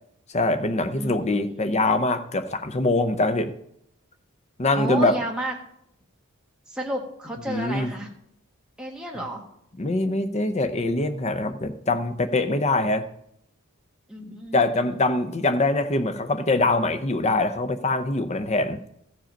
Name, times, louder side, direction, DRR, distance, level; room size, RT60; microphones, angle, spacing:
voice 1, 0.3-3.5 4.6-5.2 7.5-7.9 9.8-13.0 14.5-18.8, left 2 dB, 30° left, 9 dB, 0.6 m, -23 dB
voice 2, 1.0-1.8 4.7-5.5 6.7-8.1 8.8-9.4 14.1-15.0, right 1 dB, 5° right, -1 dB, 1.3 m, -32 dB
14.0 x 5.1 x 5.2 m, 0.73 s
head